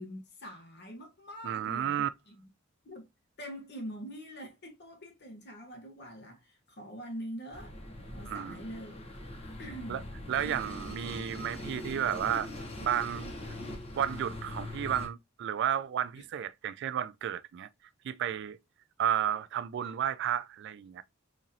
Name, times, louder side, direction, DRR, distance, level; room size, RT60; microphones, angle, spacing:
voice 1, 0.0-1.9 2.3-2.5 2.8-3.1 3.4-7.7 8.1-9.1 9.6-10.0 10.4-10.6 13.6-13.8 16.1-16.2 19.8-19.9, equal, 55° left, 1.2 m, -44 dB
voice 2, 1.4-2.1 8.3-8.6 9.9-10.0 10.3-12.5 12.8-13.3 14.0-17.7 18.0-18.6 19.0-21.0, right 9 dB, 60° right, 0.3 m, -32 dB
sound 1, 7.5-15.1, left 1 dB, 30° left, 0.9 m, -42 dB
4.1 x 3.0 x 2.5 m
head